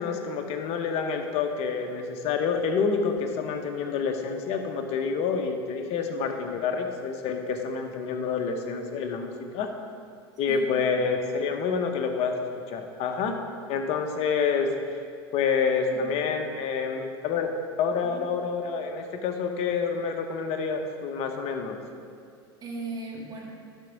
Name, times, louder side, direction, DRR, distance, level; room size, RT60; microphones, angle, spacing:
voice 1, 0.0-9.7 10.4-13.4 13.7-14.7 15.3-17.5 17.8-21.8, left 5 dB, 55° left, 5 dB, 1.0 m, -28 dB
voice 2, 10.5-11.1 15.9-16.1 18.0-18.3 22.6-23.5, right 3 dB, 30° right, -3 dB, 2.2 m, -38 dB
11.0 x 4.5 x 4.9 m, 2.4 s
hypercardioid pair, 85°, 13 cm